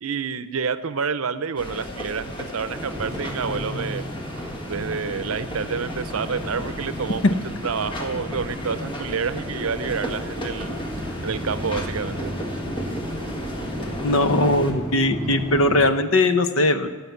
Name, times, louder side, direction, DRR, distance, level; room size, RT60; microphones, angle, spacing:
voice 1, 0.0-4.0 4.7-7.3 7.6-10.8 11.2-12.3, right 5 dB, 75° right, 13 dB, 0.6 m, -28 dB
sound 1, 1.6-14.7, equal, 25° left, 1.5 m, -34 dB
sound 2, 2.6-15.9, equal, 15° right, 3.9 m, -34 dB
voice 2, 14.0-16.9, left 2 dB, 65° left, 10 dB, 0.8 m, -20 dB
16.0 x 5.8 x 9.4 m, 1.4 s
head